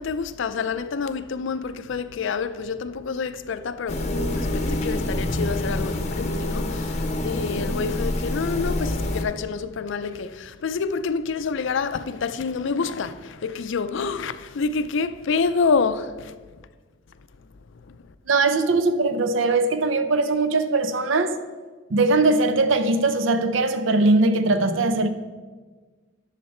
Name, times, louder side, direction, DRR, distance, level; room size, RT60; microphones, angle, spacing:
voice 1, 0.0-4.0 4.3-16.4 17.7-18.1, left 5 dB, 65° left, 0.4 m, -27 dB
sound 1, 3.9-9.2, left 1 dB, 35° left, 0.8 m, -26 dB
voice 2, 18.3-21.4 21.9-25.1, right 3 dB, 70° right, 0.6 m, -20 dB
11.0 x 6.6 x 4.3 m
head